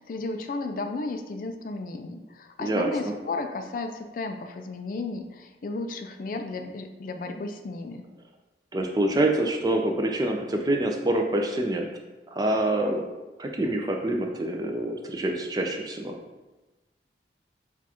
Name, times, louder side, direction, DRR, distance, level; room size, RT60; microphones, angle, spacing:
voice 1, 0.0-8.0, left 3 dB, 50° left, 6 dB, 0.3 m, -34 dB
voice 2, 2.6-3.1 8.7-11.9 12.3-13.1 13.4-16.2, right 1 dB, 20° right, 3 dB, 0.4 m, -26 dB
6.0 x 2.4 x 2.9 m, 1.1 s
head